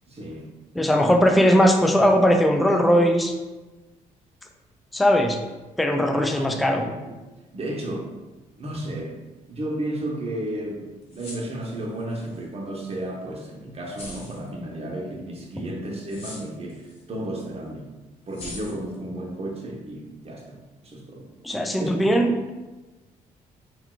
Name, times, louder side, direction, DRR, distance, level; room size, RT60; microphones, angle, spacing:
voice 1, 0.1-0.5 6.1-7.2 7.5-8.1 8.6-9.2 9.5-17.9 18.3-21.3 21.8-22.0, right 1 dB, 35° right, 0 dB, 0.7 m, -33 dB
voice 2, 0.8-3.3 4.9-5.4 5.8-6.8 21.4-22.5, equal, ahead, 3 dB, 0.3 m, -19 dB
sound 1, 11.0-12.4 12.8-12.9 13.9-14.5 16.1-17.0 17.4-17.5 18.3-19.0, left 2 dB, 35° left, 1.2 m, -41 dB
3.8 x 2.2 x 2.4 m, 1.1 s
hypercardioid pair, 50°, 18 cm